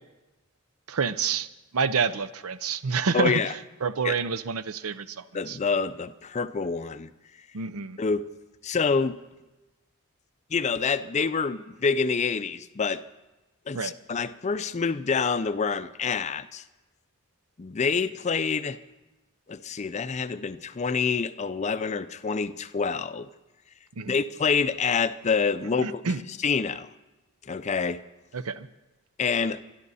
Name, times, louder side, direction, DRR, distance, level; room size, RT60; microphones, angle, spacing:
voice 1, 0.9-1.5 1.7-3.4 3.8-5.6 7.5-8.0 13.7-13.9 24.0-24.2 25.8-26.2 28.3-28.7, right 5 dB, 80° right, 15 dB, 0.6 m, -28 dB
voice 2, 3.1-3.5 4.0-4.2 5.3-7.1 8.0-8.3 8.6-9.2 10.5-13.0 13.7-16.6 17.6-18.8 19.5-23.3 24.1-26.0 26.4-26.9 27.5-28.0 29.2-29.6, left 5 dB, 30° left, 13 dB, 0.4 m, -27 dB
23.0 x 12.0 x 4.2 m, 1.1 s
head